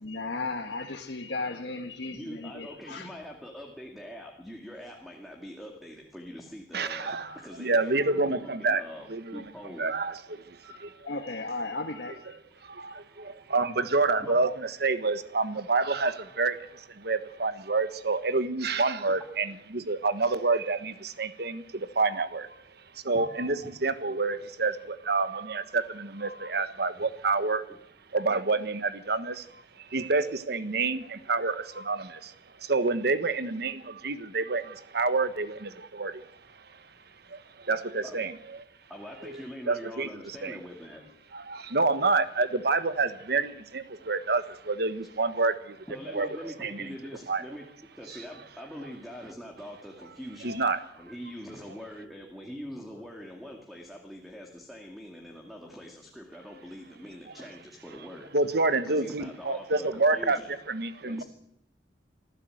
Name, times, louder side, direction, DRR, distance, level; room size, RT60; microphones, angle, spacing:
voice 1, 0.0-3.1 7.2-7.6 8.4-8.7 10.6-12.4, left 3 dB, 75° left, 2 dB, 1.6 m, -36 dB
voice 2, 2.1-9.9 12.7-13.8 14.2-14.4 23.6-23.7 27.7-27.8 38.0-38.2 38.9-41.0 45.9-47.7 48.0-50.5 51.0-58.3 58.9-60.5 61.0-61.2, equal, ahead, 1 dB, 2.4 m, -43 dB
voice 3, 6.7-8.8 9.1-9.4 9.8-10.6 12.6-22.6 23.0-27.6 28.1-32.3 32.6-36.2 37.3-38.3 39.3-39.4 39.7-40.6 41.3-45.8 46.1-46.9 47.3-47.4 50.4-50.8 58.3-60.4 60.7-61.2, right 3 dB, 65° right, 12 dB, 1.3 m, -28 dB
26.0 x 15.0 x 7.9 m, 0.78 s
head